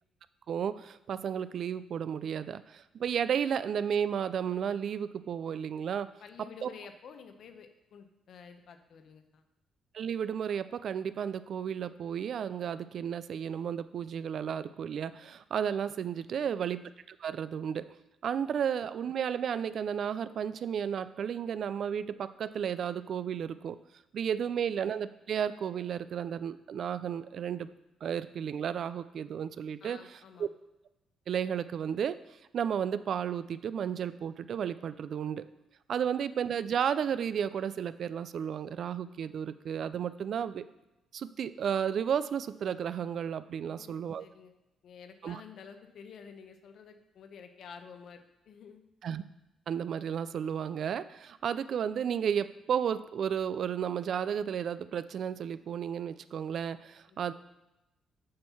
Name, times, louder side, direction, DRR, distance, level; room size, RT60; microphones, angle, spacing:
voice 1, 0.5-6.1 6.4-6.7 9.9-16.8 17.1-17.9 18.2-23.8 24.1-27.7 28.0-30.5 31.3-32.2 32.5-35.4 35.9-40.6 41.1-44.3 45.2-45.4 49.0-49.2 49.7-57.3, right 8 dB, 60° right, 14 dB, 0.3 m, -33 dB
voice 2, 6.2-9.4 16.4-16.5 29.8-30.5 36.0-36.1 43.6-44.5 44.8-48.8 57.1-57.2, left 6 dB, 65° left, 7 dB, 0.8 m, -50 dB
7.6 x 4.5 x 5.6 m, 0.95 s
cardioid pair, 90°, 0 cm